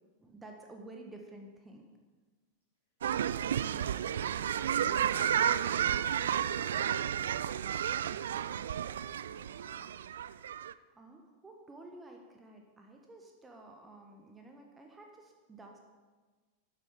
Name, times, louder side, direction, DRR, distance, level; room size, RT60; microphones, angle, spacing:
voice 1, 0.2-1.9 10.9-15.8, right 2 dB, 15° right, 2 dB, 1.4 m, -51 dB
sound 1, 3.0-10.7, right 9 dB, 65° right, 0.3 m, -32 dB
voice 2, 3.3-3.8 6.2-10.1, left 1 dB, 80° left, -8 dB, 3.8 m, -59 dB
12.5 x 9.6 x 5.0 m, 1.3 s
figure-of-eight pair, 90°, 0 cm